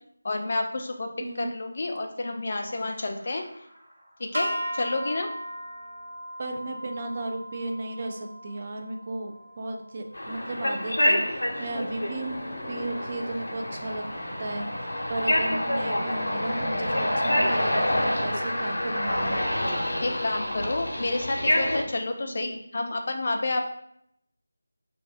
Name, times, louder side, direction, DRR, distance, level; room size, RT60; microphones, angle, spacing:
voice 1, 0.2-1.1 1.4-3.4 4.2-5.3 20.0-23.6, left 2 dB, 45° left, 4 dB, 0.4 m, -29 dB
voice 2, 1.2-1.5 6.4-12.4 12.7-14.1 14.4-19.9 22.2-22.5, right 2 dB, 35° right, 4 dB, 0.3 m, -35 dB
sound 1, 2.7-4.6 7.6-7.7 7.9-21.6, left 1 dB, 15° right, 0.9 m, -42 dB
sound 2, 4.3-10.7, equal, 65° right, 0.7 m, -37 dB
sound 3, 10.1-21.8, left 1 dB, 85° left, 0.7 m, -27 dB
2.5 x 2.3 x 3.6 m, 0.72 s
figure-of-eight pair, 170°, 0 cm